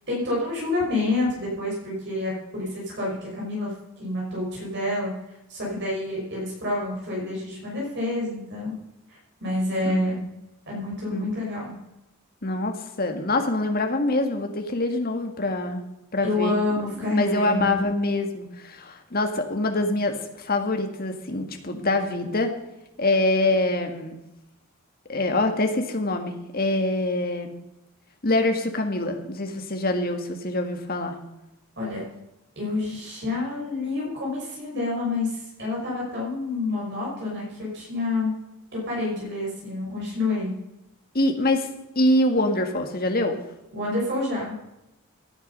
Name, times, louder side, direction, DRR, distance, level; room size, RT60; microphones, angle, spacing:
voice 1, 0.1-3.7 4.0-5.1 5.5-8.7 9.1-10.2 10.7-11.7 16.2-17.8 31.8-32.0 32.6-38.3 38.7-40.5 43.7-44.6, left 2 dB, 55° right, -3 dB, 5.9 m, -28 dB
voice 2, 12.4-15.8 16.1-16.6 17.0-22.5 23.0-24.2 25.1-27.6 28.2-31.2 41.1-41.7 42.0-43.4, left 2 dB, 45° left, 5 dB, 1.9 m, -25 dB
16.5 x 9.6 x 5.5 m, 0.91 s
head